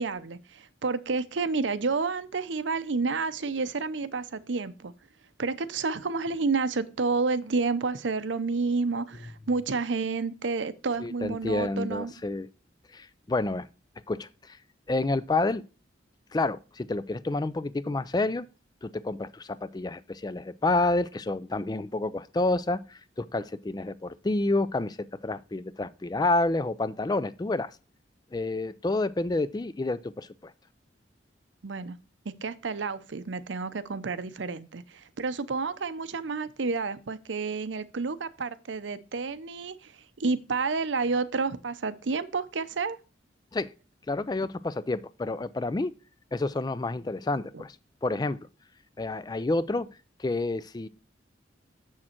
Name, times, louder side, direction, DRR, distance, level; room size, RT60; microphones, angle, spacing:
voice 1, 0.0-4.9 5.4-12.1 31.6-32.0 32.2-43.0 47.5-47.6, right 4 dB, 80° right, 0.7 m, -30 dB
voice 2, 11.0-12.5 12.9-13.7 14.1-14.6 14.9-15.6 16.3-18.5 18.8-25.0 25.2-27.7 28.3-30.5 43.5-43.7 44.1-45.9 46.3-47.8 48.0-48.4 49.0-49.9 50.2-50.9, left 2 dB, 20° left, 0.4 m, -29 dB
7.3 x 6.5 x 4.4 m
head